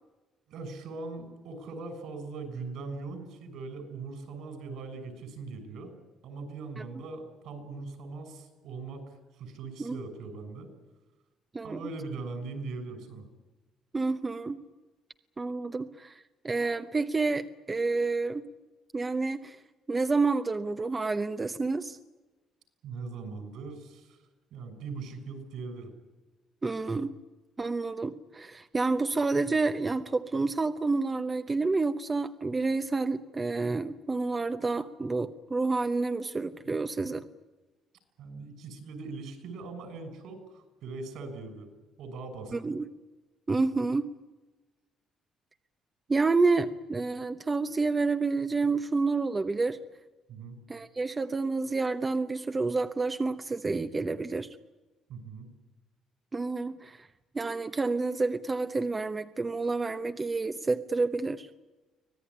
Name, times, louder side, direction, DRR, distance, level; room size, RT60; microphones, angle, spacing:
voice 1, 0.5-5.9 6.2-10.7 11.6-13.3 22.8-24.2 24.5-25.9 38.2-41.7 42.0-42.5 50.3-50.6 55.1-55.5, right 3 dB, 75° right, 8 dB, 6.7 m, -40 dB
voice 2, 13.9-14.6 15.4-18.5 18.9-19.6 19.9-22.0 26.6-27.1 27.6-37.3 42.5-42.9 43.5-44.1 46.1-49.8 50.7-54.5 56.3-57.1 57.3-61.5, right 3 dB, 20° right, 8 dB, 0.9 m, -29 dB
24.5 x 18.0 x 10.0 m, 1.2 s
cardioid pair, 125°, 0 cm